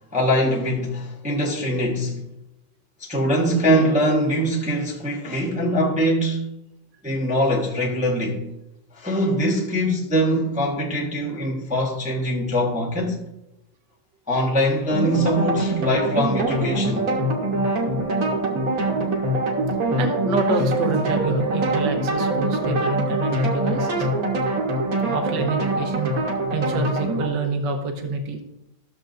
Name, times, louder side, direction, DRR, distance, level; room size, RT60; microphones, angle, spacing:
voice 1, 0.1-2.2 3.0-6.5 7.0-8.4 8.9-13.2 14.3-17.0, equal, 5° right, 0.9 m, -22 dB
sound 1, 14.9-27.3, right 1 dB, 50° right, 1.6 m, -23 dB
voice 2, 20.0-24.1 25.1-26.2 26.5-28.4, right 3 dB, 70° right, 1.6 m, -27 dB
14.0 x 6.9 x 2.6 m
omnidirectional pair, 2.1 m